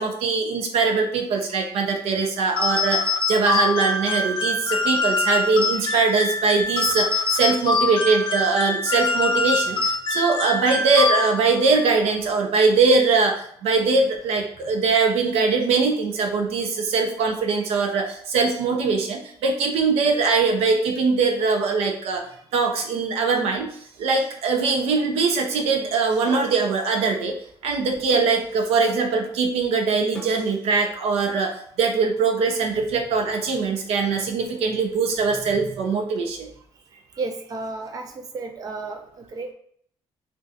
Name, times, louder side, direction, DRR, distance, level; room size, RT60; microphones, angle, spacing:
voice 1, 0.0-22.2 22.5-27.4 27.6-36.5, right 4 dB, 85° right, 3 dB, 0.6 m, -22 dB
sound 1, 2.6-11.6, left 3 dB, 50° left, 0.6 m, -24 dB
voice 2, 5.7-6.0 35.7-35.8 37.2-39.5, right 3 dB, 35° right, 4 dB, 0.5 m, -33 dB
sound 2, 26.3-26.6 28.1-28.3 30.1-30.4, left 2 dB, 10° left, 0.7 m, -38 dB
2.4 x 2.3 x 3.9 m, 0.62 s
cardioid pair, 165°, 10 cm